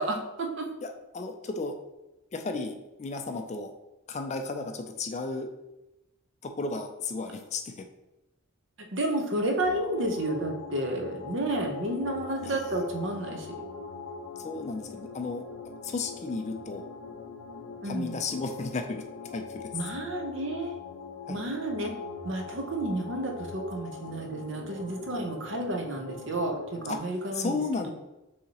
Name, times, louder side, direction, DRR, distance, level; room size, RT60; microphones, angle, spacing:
voice 1, 0.0-0.6 8.9-13.5 17.8-18.2 19.7-20.8 21.3-21.9 22.2-27.6, right 1 dB, 55° right, 2 dB, 0.7 m, -31 dB
voice 2, 0.8-1.7 2.3-3.7 4.1-5.5 6.4-7.7 12.4-12.5 14.4-15.5 15.8-16.8 17.8-19.0 19.3-19.7 21.3-21.4 26.9-27.0 27.3-27.9, left 3 dB, 30° left, 5 dB, 0.3 m, -33 dB
sound 1, 9.6-27.0, left 4 dB, 80° left, 0.5 m, -42 dB
6.4 x 2.8 x 2.9 m, 0.98 s
head